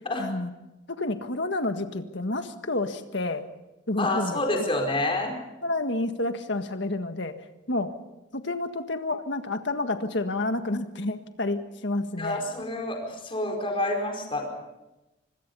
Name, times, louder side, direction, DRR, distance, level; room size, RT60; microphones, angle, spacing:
voice 1, 0.2-0.5 0.9-3.4 3.9-4.4 5.6-7.4 7.7-8.0 8.3-12.4, left 2 dB, 65° left, 7 dB, 1.7 m, -29 dB
voice 2, 4.0-5.3 12.2-14.5, left 1 dB, 30° left, 2 dB, 4.8 m, -28 dB
25.5 x 22.0 x 5.6 m, 1.0 s
head